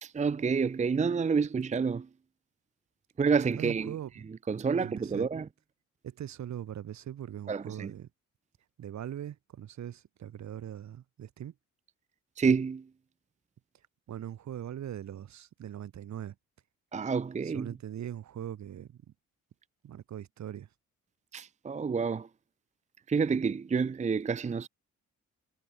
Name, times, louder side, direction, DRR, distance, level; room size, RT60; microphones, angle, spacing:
voice 1, 0.0-2.1 3.2-3.9 4.5-5.5 7.5-7.9 12.4-12.9 16.9-17.7 21.3-22.3 23.1-24.7, right 5 dB, 25° right, 0.7 m, -28 dB
voice 2, 3.6-4.1 4.8-5.3 6.0-8.1 8.8-11.5 14.1-16.4 17.4-19.0 19.8-20.7, right 10 dB, 65° right, 3.7 m, -41 dB
cardioid pair, 90°, 30 cm